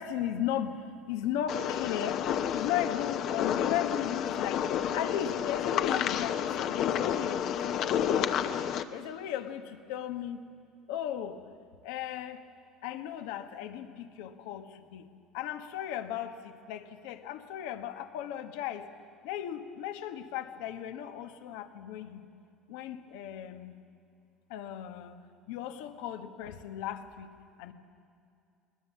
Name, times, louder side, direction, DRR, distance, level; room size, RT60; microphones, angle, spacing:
voice 1, 0.0-2.2 2.5-4.6 4.9-8.4 8.9-10.4 10.9-11.4 11.8-12.5 12.8-15.1 15.3-18.9 19.2-22.3 22.7-23.8 24.5-25.2 25.5-27.7, left 10 dB, 85° left, 8 dB, 1.2 m, -36 dB
sound 1, 1.5-8.8, left 9 dB, 55° left, 0.9 m, -30 dB
20.5 x 20.0 x 7.4 m, 2.5 s
supercardioid pair, 115°, 0 cm